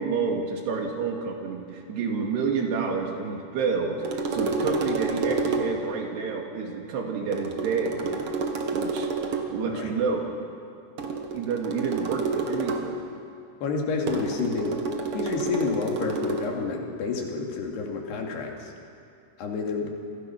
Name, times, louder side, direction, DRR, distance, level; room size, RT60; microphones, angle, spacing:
voice 1, 0.0-4.0 4.3-8.2 8.7-10.3 11.0-13.0, right 5 dB, 85° right, 2 dB, 4.3 m, -29 dB
sound 1, 4.0-5.9 7.3-9.6 11.0-13.0 14.1-16.5, right 3 dB, 55° right, 1.6 m, -29 dB
voice 2, 13.6-14.8 15.1-18.7 19.4-19.9, left 4 dB, 80° left, 1 dB, 4.5 m, -29 dB
28.0 x 20.0 x 6.0 m, 2.4 s
omnidirectional pair, 4.7 m